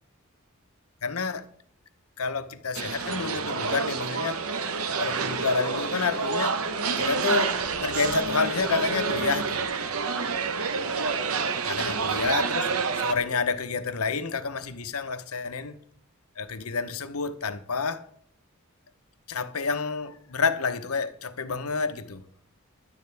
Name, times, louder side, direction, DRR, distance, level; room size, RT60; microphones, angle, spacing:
voice 1, 1.0-1.5 2.2-4.4 5.0-9.6 10.5-10.6 10.9-11.3 11.6-15.8 16.4-18.0 19.3-22.2, left 4 dB, 90° left, 0.9 m, -29 dB
sound 1, 2.7-13.1, right 5 dB, 80° right, 1.0 m, -28 dB
16.5 x 11.0 x 3.4 m
head